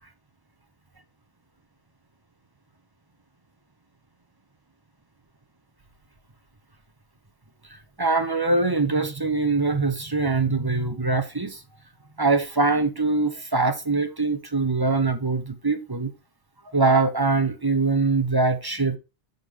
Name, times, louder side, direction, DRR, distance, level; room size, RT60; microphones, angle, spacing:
voice 1, 8.0-11.6 12.2-16.1 16.7-19.0, right 3 dB, 25° right, 0.8 m, -23 dB
7.0 x 4.0 x 4.6 m
omnidirectional pair, 1.1 m